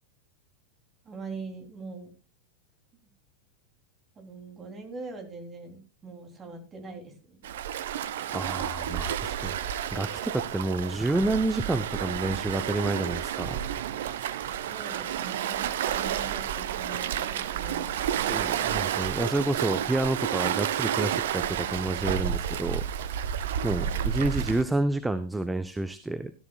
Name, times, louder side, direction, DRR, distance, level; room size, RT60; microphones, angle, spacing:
voice 1, 1.0-2.1 4.2-7.5 14.7-18.4 23.6-24.1, right 3 dB, 20° right, 4 dB, 3.4 m, -42 dB
Waves surf, 7.4-24.6, right 10 dB, 55° right, 0.8 m, -30 dB
voice 2, 8.3-13.6 18.3-23.2 23.6-26.3, right 2 dB, 5° right, 12 dB, 0.8 m, -29 dB
16.5 x 12.5 x 2.4 m, 0.31 s
figure-of-eight pair, 90°, 0 cm